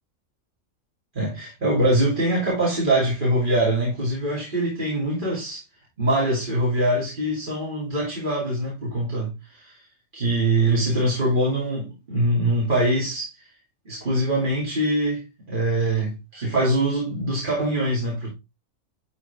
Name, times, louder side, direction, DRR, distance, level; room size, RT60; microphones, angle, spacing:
voice 1, 1.1-5.6 6.0-9.8 10.1-13.3 13.8-18.3, right 1 dB, 35° right, 3.0 m, -23 dB
12.0 x 4.2 x 3.5 m
omnidirectional pair, 1.4 m